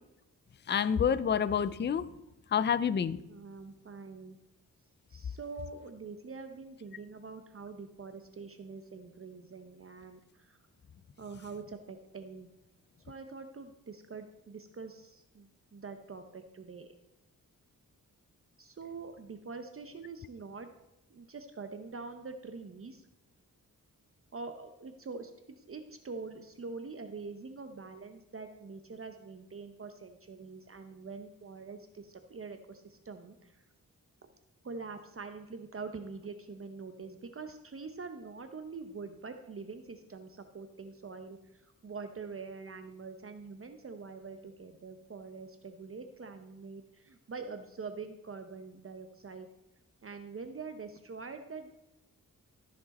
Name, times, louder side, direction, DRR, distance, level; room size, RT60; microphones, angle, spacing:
voice 1, 0.7-2.1 2.5-3.2, left 7 dB, 35° left, 15 dB, 0.4 m, -28 dB
voice 2, 3.3-4.4 5.1-10.6 11.2-12.5 13.0-16.9 18.6-20.7 21.1-23.1 24.3-33.6 34.6-49.5 50.0-51.7, right 4 dB, 40° right, 7 dB, 0.7 m, -45 dB
13.5 x 6.0 x 4.2 m, 0.93 s
wide cardioid pair, 105°, 34 cm